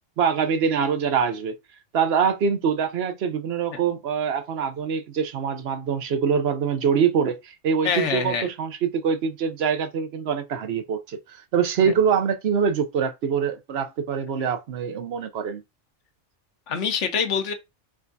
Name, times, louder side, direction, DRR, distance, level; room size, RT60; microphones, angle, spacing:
voice 1, 0.2-1.5 1.9-15.6, right 6 dB, 65° right, 0.9 m, -24 dB
voice 2, 7.8-8.5 11.8-11.9 16.7-17.5, left 6 dB, 80° left, 1.1 m, -25 dB
5.0 x 3.4 x 2.6 m
omnidirectional pair, 1.2 m